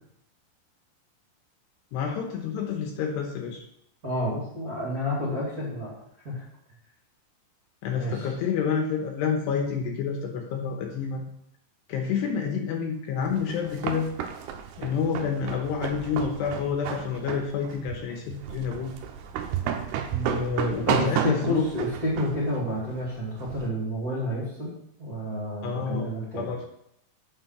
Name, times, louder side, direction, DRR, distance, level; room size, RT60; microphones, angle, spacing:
voice 1, 1.9-3.6 7.8-11.2 11.9-14.1 14.8-18.9 20.3-21.6 25.6-26.7, left 6 dB, 75° left, 2 dB, 2.9 m, -29 dB
voice 2, 4.0-5.9 6.2-6.4 7.9-8.3 20.1-24.7 25.0-26.5, equal, 30° right, -8 dB, 1.8 m, -30 dB
sound 1, 13.3-23.7, right 9 dB, 80° right, 2.4 m, -32 dB
8.7 x 6.2 x 5.9 m, 0.75 s
omnidirectional pair, 5.4 m